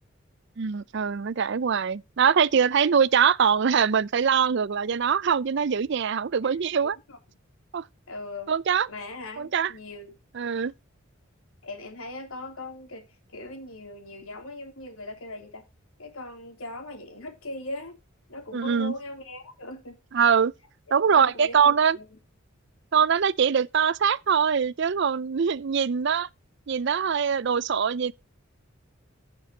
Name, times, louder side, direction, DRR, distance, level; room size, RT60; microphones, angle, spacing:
voice 1, 0.6-7.0 7.7-7.8 8.5-8.9 9.4-9.7 10.3-10.7 18.5-18.9 20.1-20.5 20.9-22.0 22.9-26.3 26.7-28.1, right 7 dB, 55° right, 0.4 m, -23 dB
voice 2, 6.8-7.2 8.1-8.5 8.9-10.1 11.6-15.6 16.0-18.0 18.3-20.0 21.1-22.2, left 2 dB, 90° left, 3.1 m, -39 dB
16.0 x 6.2 x 2.8 m
head